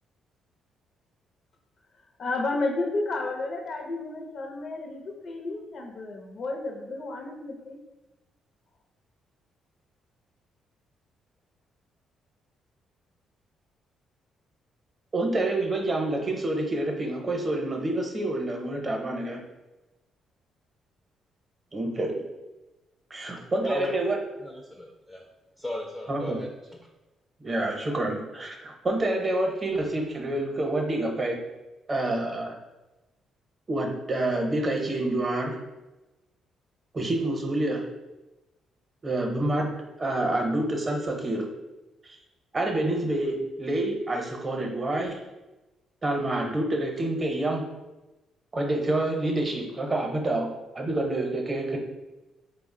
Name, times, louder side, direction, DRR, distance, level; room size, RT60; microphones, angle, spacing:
voice 1, 2.2-7.8, left 2 dB, 55° left, 2 dB, 0.5 m, -32 dB
voice 2, 15.1-19.4 21.7-22.2 23.1-24.2 26.1-26.4 27.4-31.4 31.9-32.5 33.7-35.6 36.9-37.8 39.0-39.7 40.0-41.5 42.0-42.2 42.5-45.2 46.0-47.6 48.5-50.5 50.7-51.8, right 1 dB, 30° right, 1 dB, 0.7 m, -27 dB
voice 3, 23.6-23.9 24.4-25.2 25.6-26.5, left 1 dB, 5° left, 1 dB, 0.4 m, -35 dB
3.7 x 2.0 x 3.6 m, 1.1 s
cardioid pair, 90°, 0 cm